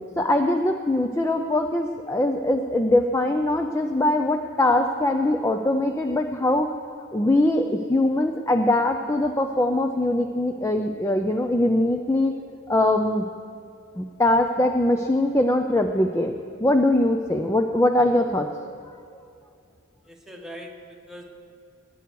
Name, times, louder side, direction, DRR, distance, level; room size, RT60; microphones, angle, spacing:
voice 1, 0.2-6.7 7.1-12.4 12.7-13.3 14.0-16.3 16.6-18.8, left 1 dB, 15° left, 5 dB, 0.4 m, -22 dB
voice 2, 20.1-21.2, equal, ahead, 0 dB, 1.3 m, -41 dB
19.0 x 9.3 x 4.7 m, 2.5 s
head